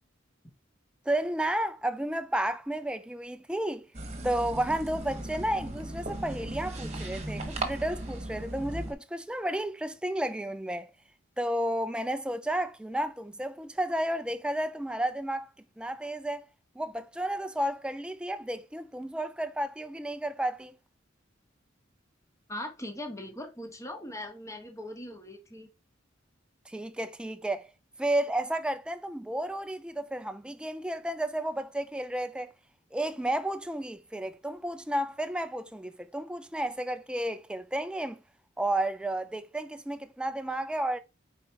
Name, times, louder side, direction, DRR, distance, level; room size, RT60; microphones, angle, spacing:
voice 1, 1.1-3.9 4.2-10.9 11.4-15.5 15.8-16.4 16.8-20.7 26.7-27.7 28.0-32.5 32.9-38.2 38.6-41.0, right 1 dB, 5° right, 0.4 m, -32 dB
sound 1, 3.9-8.9, right 1 dB, 35° right, 1.2 m, -37 dB
voice 2, 22.5-25.7, left 1 dB, 15° left, 1.3 m, -40 dB
4.9 x 4.4 x 4.6 m
head